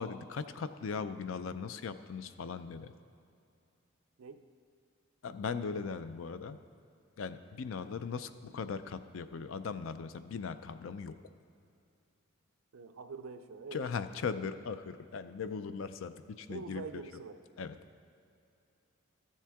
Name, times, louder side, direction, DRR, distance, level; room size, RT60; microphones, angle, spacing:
voice 1, 0.0-2.9 5.2-6.6 7.2-11.2 13.7-16.8 17.6-17.7, left 5 dB, 70° left, 11 dB, 0.4 m, -39 dB
voice 2, 12.7-13.9 16.5-17.4, right 4 dB, 80° right, 8 dB, 0.5 m, -45 dB
13.0 x 7.3 x 3.5 m, 2.6 s
head